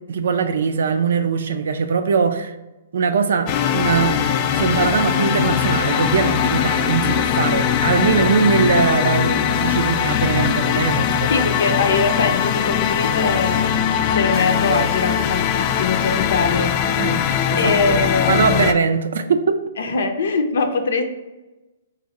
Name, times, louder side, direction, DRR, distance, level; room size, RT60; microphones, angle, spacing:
voice 1, 0.1-2.6 2.9-4.3 4.5-11.5 17.0-17.2 17.5-19.6, right 5 dB, 70° right, 0.4 m, -21 dB
sound 1, 3.5-18.7, left 9 dB, 35° left, 0.3 m, -20 dB
voice 2, 11.3-16.7 17.6-18.7 19.8-21.0, left 4 dB, 70° left, 0.6 m, -22 dB
3.9 x 2.6 x 4.0 m
hypercardioid pair, 135°, 0 cm